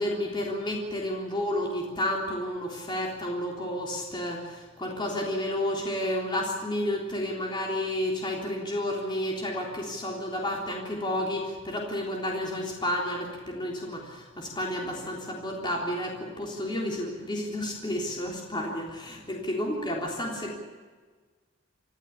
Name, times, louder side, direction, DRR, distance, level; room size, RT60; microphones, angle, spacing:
voice 1, 0.0-20.5, left 1 dB, 25° left, -1 dB, 3.6 m, -31 dB
25.5 x 15.0 x 8.5 m, 1.5 s
head